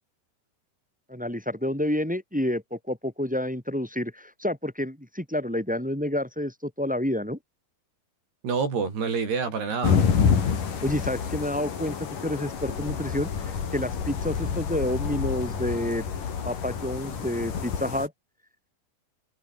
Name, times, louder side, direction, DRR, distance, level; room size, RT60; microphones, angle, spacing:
voice 1, 1.1-7.4 10.8-16.0 16.4-18.1, left 1 dB, ahead, 3.0 m, -29 dB
voice 2, 8.4-10.0, right 5 dB, 75° right, 8.1 m, -27 dB
sound 1, 9.8-18.1, left 6 dB, 55° left, 4.9 m, -28 dB
omnidirectional pair, 4.7 m